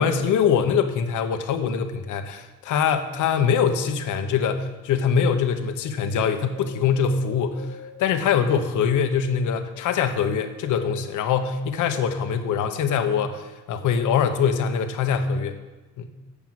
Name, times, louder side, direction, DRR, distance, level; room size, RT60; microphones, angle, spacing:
voice 1, 0.0-15.6 16.0-16.1, left 7 dB, 80° left, 8 dB, 0.9 m, -23 dB
Wind, 6.0-9.6 10.1-11.4 11.9-12.0, left 1 dB, 55° right, 2.1 m, -46 dB
8.3 x 5.8 x 7.4 m, 1.2 s
cardioid pair, 90°, 30 cm